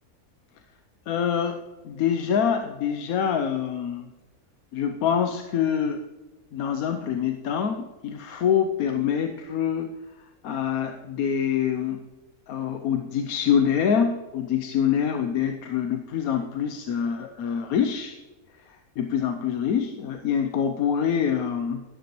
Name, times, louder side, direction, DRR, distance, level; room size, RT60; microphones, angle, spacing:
voice 1, 1.1-4.0 4.7-6.0 6.5-10.0 10.4-12.0 12.5-18.2 18.7-21.8, left 8 dB, 75° left, 6 dB, 1.1 m, -25 dB
12.5 x 10.0 x 3.1 m, 1.1 s
omnidirectional pair, 1.6 m